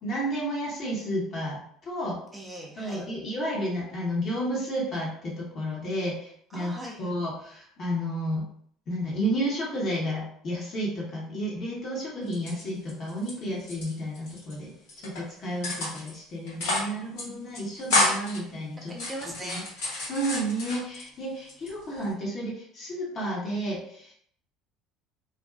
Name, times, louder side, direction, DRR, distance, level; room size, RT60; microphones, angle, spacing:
voice 1, 0.0-2.2 2.8-6.7 7.0-8.5 8.9-14.7 15.0-18.9 19.5-19.6 19.9-24.1, equal, 45° left, -3 dB, 1.0 m, -31 dB
voice 2, 2.3-3.0 6.5-7.1 18.9-19.7, right 1 dB, 15° right, -2 dB, 0.7 m, -39 dB
sound 1, 12.3-13.3 13.6-14.5 14.9-15.2 15.6-16.1 16.5-16.9 17.2-17.3 17.5-18.4 18.9-21.1 21.5-22.1, left 2 dB, 70° left, 1.0 m, -29 dB
2.5 x 2.3 x 2.4 m, 0.63 s
figure-of-eight pair, 65°, 0 cm